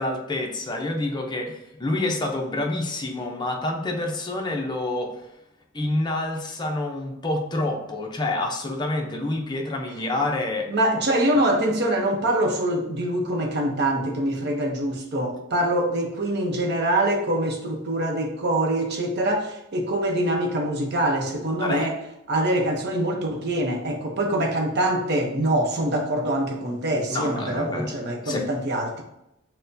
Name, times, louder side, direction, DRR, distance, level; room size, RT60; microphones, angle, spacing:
voice 1, 0.0-5.3 5.7-10.7 21.6-21.9 27.1-27.9 28.2-28.5, left 2 dB, 20° left, 1 dB, 0.5 m, -27 dB
voice 2, 10.7-22.0 22.3-29.0, right 1 dB, 50° right, 2 dB, 0.7 m, -24 dB
6.4 x 2.2 x 2.6 m, 0.86 s
head